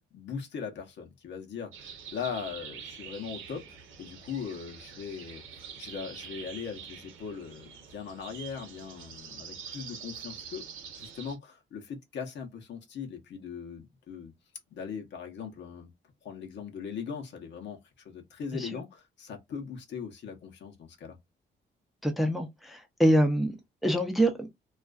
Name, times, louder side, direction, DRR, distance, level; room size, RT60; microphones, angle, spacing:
voice 1, 0.0-10.6 11.0-14.3 14.7-15.9 16.2-21.2, left 6 dB, 65° left, 0.8 m, -40 dB
sound 1, 1.7-11.4, right 7 dB, 85° right, 0.8 m, -45 dB
voice 2, 22.0-23.5 23.8-24.5, equal, ahead, 0.5 m, -25 dB
2.4 x 2.3 x 2.3 m
cardioid pair, 90°, 20 cm